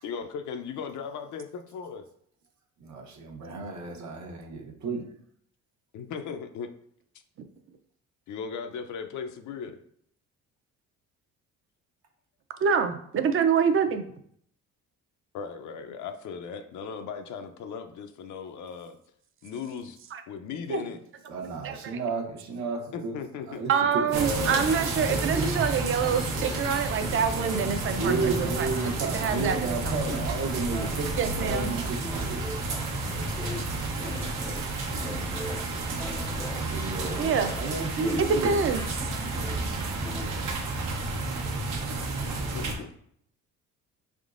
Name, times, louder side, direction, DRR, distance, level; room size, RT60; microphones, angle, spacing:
voice 1, 0.0-2.1 5.9-6.7 8.3-9.8 15.3-19.0 19.4-20.0 20.3-21.0 22.9-23.6 42.5-42.9, left 6 dB, 70° left, 7 dB, 0.6 m, -37 dB
voice 2, 2.8-5.0 21.3-23.2 23.5-24.6 27.6-32.4 36.6-38.6 42.0-42.7, right 4 dB, 65° right, 2 dB, 0.9 m, -33 dB
voice 3, 12.6-14.0 20.1-20.2 20.7-20.8 21.6-22.0 23.7-28.7 29.0-30.2 31.2-31.7 37.2-37.5 38.4-38.8, right 6 dB, 45° right, 8 dB, 0.5 m, -26 dB
sound 1, 24.1-42.7, right 3 dB, 85° right, 1.0 m, -31 dB
sound 2, 24.3-40.3, left 1 dB, 10° left, 0.3 m, -40 dB
4.6 x 3.6 x 2.5 m, 0.66 s
cardioid pair, 105°, 31 cm